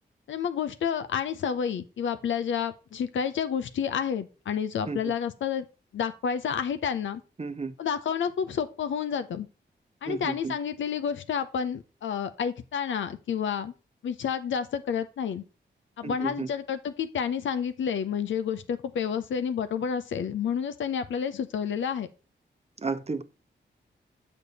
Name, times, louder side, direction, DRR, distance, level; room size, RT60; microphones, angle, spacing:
voice 1, 0.3-5.7 5.9-7.2 7.8-9.5 10.0-13.7 14.0-15.4 16.0-22.1, left 7 dB, 90° left, 0.6 m, -30 dB
voice 2, 7.4-7.7 10.0-10.5 16.0-16.5 22.8-23.2, right 4 dB, 35° right, 0.7 m, -32 dB
6.7 x 5.2 x 4.0 m
cardioid pair, 55°, 19 cm